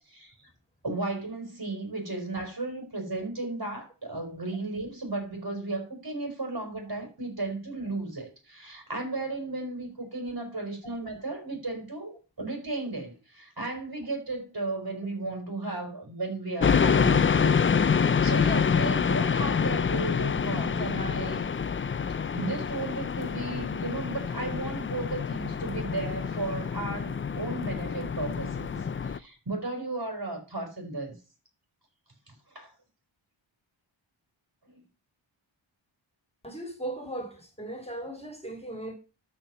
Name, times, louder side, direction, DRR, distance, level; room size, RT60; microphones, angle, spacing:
voice 1, 0.1-0.5 0.8-21.4 22.1-31.1 32.3-32.7 34.6-34.8, right 2 dB, 50° right, 4.4 m, -35 dB
sound 1, 16.6-29.2, left 6 dB, 30° left, 0.4 m, -27 dB
voice 2, 36.4-38.9, right 1 dB, 10° left, 2.7 m, -37 dB
12.5 x 4.6 x 5.5 m
wide cardioid pair, 90°, 48 cm